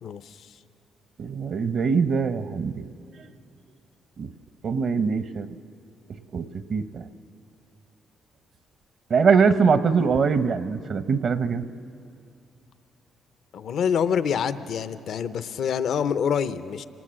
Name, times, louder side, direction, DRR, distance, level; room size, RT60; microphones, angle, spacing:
voice 1, 0.0-0.5 13.5-16.8, left 7 dB, 65° left, 13 dB, 0.7 m, -26 dB
voice 2, 1.2-2.8 4.2-4.3 4.6-5.5 6.3-7.0 9.1-11.6, right 5 dB, 55° right, 12 dB, 0.8 m, -22 dB
25.5 x 19.0 x 7.6 m, 2.5 s
cardioid pair, 90°, 0 cm